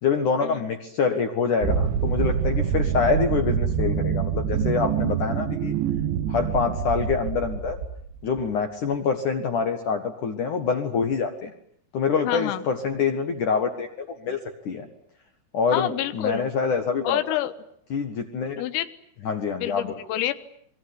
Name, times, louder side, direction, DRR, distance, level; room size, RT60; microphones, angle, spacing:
voice 1, 0.0-5.7 6.3-7.8 8.2-11.5 11.9-14.4 14.7-14.9 15.5-17.2 17.9-18.6 19.2-19.9, left 5 dB, 60° left, 6 dB, 2.2 m, -25 dB
sound 1, 1.6-8.4, right 7 dB, 70° right, 3.6 m, -26 dB
voice 2, 12.2-12.6 15.7-16.5 17.0-17.5 18.6-18.9 19.6-20.3, left 14 dB, 90° left, 12 dB, 4.0 m, -27 dB
26.0 x 22.5 x 9.9 m, 0.66 s
omnidirectional pair, 5.8 m